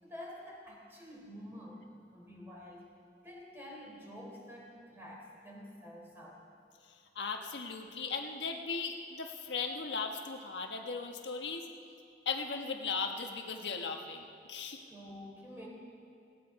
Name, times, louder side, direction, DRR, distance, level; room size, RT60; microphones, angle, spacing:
voice 1, 0.0-2.9 3.2-6.4 14.9-15.7, equal, 15° right, -3 dB, 3.5 m, -48 dB
voice 2, 7.1-11.7 12.2-14.8, left 5 dB, 90° left, 3 dB, 1.3 m, -37 dB
17.5 x 17.0 x 4.8 m, 2.3 s
head